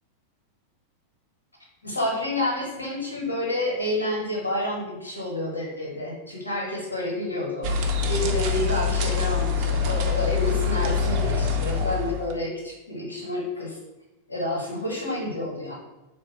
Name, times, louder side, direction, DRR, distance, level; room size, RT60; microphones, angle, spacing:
voice 1, 1.8-7.7 8.1-13.8 14.3-15.7, left 1 dB, 80° left, -2 dB, 1.0 m, -29 dB
sound 1, 7.6-12.3, left 5 dB, 45° right, 0.5 m, -25 dB
3.7 x 2.1 x 4.3 m, 1.0 s
figure-of-eight pair, 90°, 0 cm